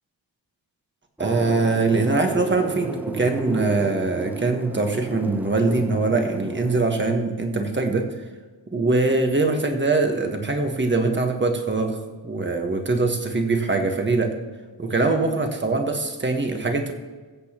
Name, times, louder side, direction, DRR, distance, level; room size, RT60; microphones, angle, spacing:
sound 1, 1.2-6.8, right 1 dB, 5° right, 0.4 m, -34 dB
voice 1, 1.2-8.1 8.7-12.0 12.2-14.3 14.8-16.9, right 3 dB, 25° right, 3 dB, 1.4 m, -22 dB
22.0 x 8.0 x 3.0 m, 1.4 s
wide cardioid pair, 145°, 45 cm